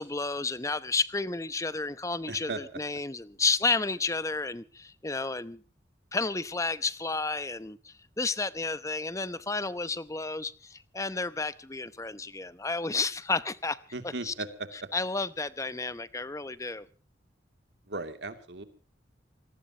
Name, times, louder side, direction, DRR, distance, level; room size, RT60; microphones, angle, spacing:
voice 1, 0.0-5.6 6.1-14.3 14.9-16.9, left 3 dB, 20° left, 15 dB, 0.8 m, -31 dB
voice 2, 2.3-2.6 13.9-14.7 17.9-18.6, right 3 dB, 75° right, 8 dB, 2.7 m, -36 dB
25.5 x 19.0 x 2.9 m, 0.37 s
head